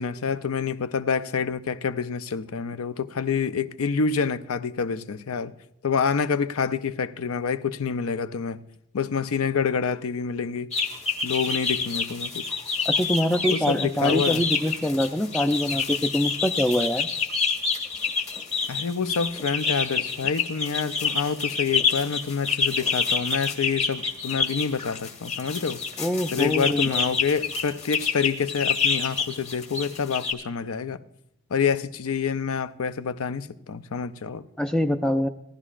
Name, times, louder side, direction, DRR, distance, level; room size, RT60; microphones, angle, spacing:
voice 1, 0.0-5.5 5.8-8.6 8.9-10.7 11.2-12.4 13.5-14.4 18.7-25.8 26.3-31.0 31.5-34.4, left 6 dB, 75° left, 0.5 m, -27 dB
sound 1, 10.7-30.3, left 5 dB, 30° left, 1.2 m, -27 dB
voice 2, 12.8-17.1 26.0-27.1 34.6-35.3, left 1 dB, 5° left, 0.3 m, -24 dB
17.5 x 11.0 x 2.4 m
head